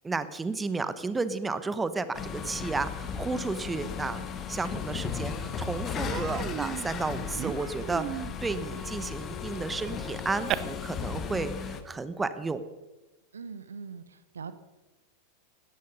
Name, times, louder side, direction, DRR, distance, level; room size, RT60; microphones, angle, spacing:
voice 1, 0.0-4.2 4.5-12.6, right 3 dB, 10° right, 13 dB, 1.0 m, -32 dB
sound 1, 2.1-11.8, left 7 dB, 30° left, 1.5 m, -36 dB
Human voice, 5.0-5.1 5.5-5.7 6.0-10.5, right 12 dB, 35° right, 0.8 m, -36 dB
voice 2, 13.3-14.5, right 5 dB, 70° right, 13 dB, 0.9 m, -41 dB
16.5 x 13.5 x 5.5 m, 1.1 s
figure-of-eight pair, 90°, 0 cm